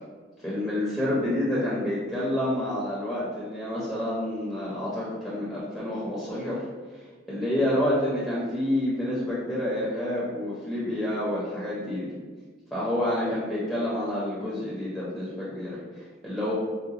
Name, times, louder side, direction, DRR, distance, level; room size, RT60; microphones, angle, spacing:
voice 1, 0.4-6.6 7.3-12.1 12.7-16.5, left 1 dB, 5° left, -8 dB, 0.6 m, -28 dB
4.8 x 2.2 x 2.7 m, 1.4 s
head